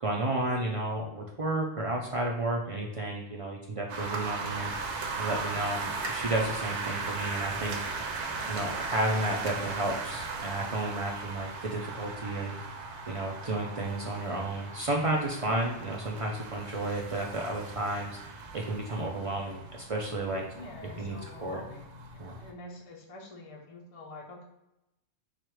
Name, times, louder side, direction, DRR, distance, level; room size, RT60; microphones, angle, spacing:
voice 1, 0.0-4.7 5.2-8.1 8.5-12.5 13.1-18.2 18.5-20.4 21.0-21.6 22.2-22.3, right 2 dB, 50° right, -1 dB, 0.4 m, -32 dB
sound 1, 3.9-22.5, right 4 dB, 70° right, 0.9 m, -38 dB
voice 2, 20.4-22.0 22.4-24.4, left 2 dB, 35° left, 0 dB, 0.6 m, -46 dB
4.4 x 2.4 x 4.7 m, 0.89 s
omnidirectional pair, 1.3 m